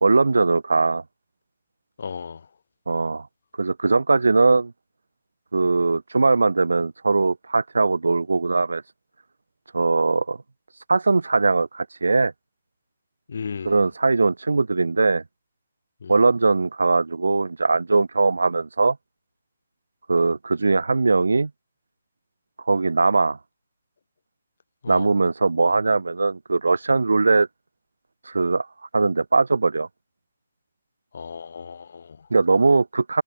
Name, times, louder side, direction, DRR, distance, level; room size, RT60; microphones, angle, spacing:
voice 1, 0.0-1.0 2.9-3.3 3.6-4.7 5.5-8.8 9.7-10.4 10.9-12.3 13.7-15.2 16.1-19.0 20.1-21.5 22.7-23.4 24.9-27.5 28.3-28.7 28.9-29.9 32.3-33.2, right 3 dB, 85° right, 0.8 m, -20 dB
voice 2, 2.0-2.5 13.3-13.8 16.0-16.2 24.8-25.1 31.1-32.3, left 6 dB, 65° left, 0.5 m, -35 dB
hypercardioid pair, 150°, 0 cm